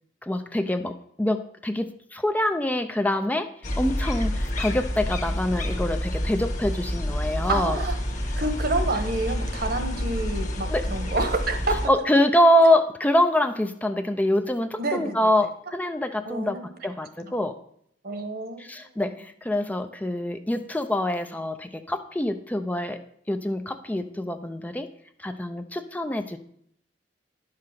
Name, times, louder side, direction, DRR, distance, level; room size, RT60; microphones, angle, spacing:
voice 1, 0.2-3.5 3.8-7.8 10.7-10.9 11.9-16.6 16.8-17.6 18.6-23.0 23.3-24.9 25.2-26.4, left 1 dB, 10° left, 7 dB, 0.5 m, -25 dB
sound 1, 3.6-11.9, equal, 45° left, 1.4 m, -28 dB
voice 2, 7.5-8.0 8.4-11.8 14.8-15.3 16.3-16.7 17.2-17.3 18.0-18.6 19.0-19.1, right 2 dB, 55° right, 8 dB, 1.3 m, -28 dB
10.5 x 5.7 x 6.5 m, 0.68 s
head